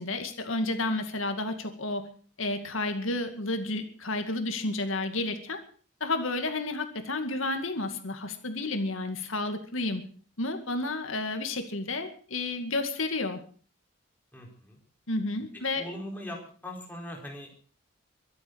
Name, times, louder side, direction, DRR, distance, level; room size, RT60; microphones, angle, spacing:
voice 1, 0.0-2.1 2.4-5.6 6.0-10.0 10.4-13.4 15.1-15.8, left 2 dB, 85° left, 6 dB, 2.3 m, -31 dB
voice 2, 14.3-14.8 15.5-17.6, left 1 dB, 10° left, -1 dB, 4.6 m, -41 dB
24.0 x 8.4 x 6.4 m, 0.43 s
head